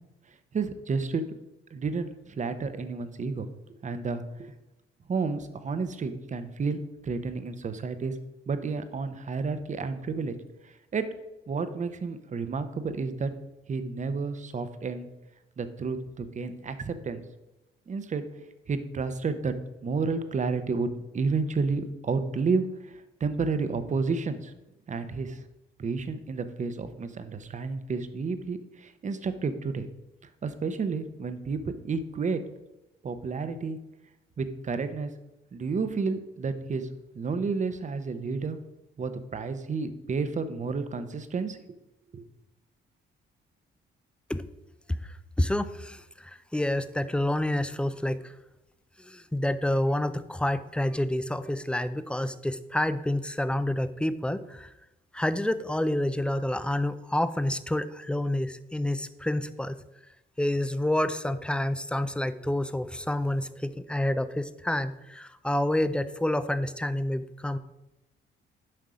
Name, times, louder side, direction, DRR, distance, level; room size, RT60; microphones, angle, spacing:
voice 1, 0.5-1.2 1.7-3.5 3.8-4.5 5.1-8.1 8.5-10.4 10.6-11.1 11.5-13.3 13.7-15.1 15.6-17.2 17.9-18.3 18.7-19.5 19.8-24.5 24.9-25.4 25.8-29.9 30.4-32.4 33.0-33.8 34.4-35.1 35.5-36.9 37.1-38.6 39.0-41.6 42.1-42.2, right 4 dB, 40° right, 11 dB, 0.8 m, -31 dB
voice 2, 45.4-48.3 49.0-54.7 55.1-59.8 60.4-67.6, left 1 dB, 5° left, 13 dB, 0.4 m, -28 dB
7.7 x 5.4 x 4.9 m, 0.94 s
cardioid pair, 90°, 20 cm